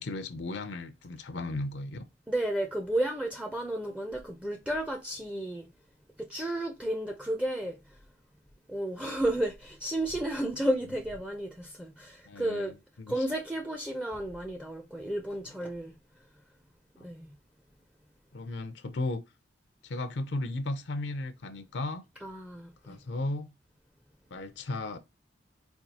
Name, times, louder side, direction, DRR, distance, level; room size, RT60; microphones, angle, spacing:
voice 1, 0.0-2.0 12.3-13.3 17.0-17.1 18.3-19.2 19.8-22.0 22.9-23.5 24.3-25.0, left 2 dB, 80° left, 0.5 m, -35 dB
voice 2, 2.3-5.7 6.2-8.0 8.7-12.8 13.1-15.9 17.0-17.3 22.2-23.0, right 1 dB, 5° right, 0.4 m, -32 dB
4.3 x 2.3 x 2.7 m
head